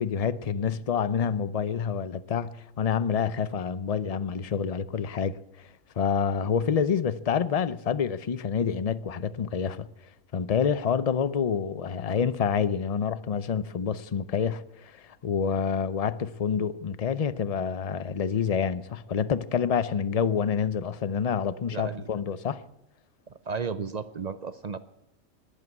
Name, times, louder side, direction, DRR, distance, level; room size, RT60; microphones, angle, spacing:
voice 1, 0.0-5.4 6.0-9.9 10.3-22.6, left 7 dB, 50° left, 0.4 m, -27 dB
voice 2, 21.7-22.1 23.5-24.8, right 5 dB, 55° right, 0.4 m, -33 dB
20.5 x 8.4 x 8.4 m
omnidirectional pair, 1.4 m